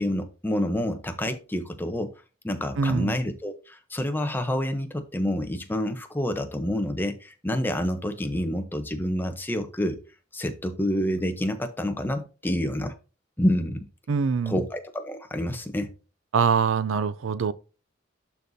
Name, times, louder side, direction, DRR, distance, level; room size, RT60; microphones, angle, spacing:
voice 1, 0.0-2.1 2.4-10.0 10.3-12.9 13.4-13.9 14.5-15.9, equal, 10° left, 0.8 m, -28 dB
voice 2, 2.8-3.2 14.1-14.6 16.3-17.5, right 5 dB, 80° right, 0.4 m, -24 dB
11.5 x 4.0 x 2.7 m
head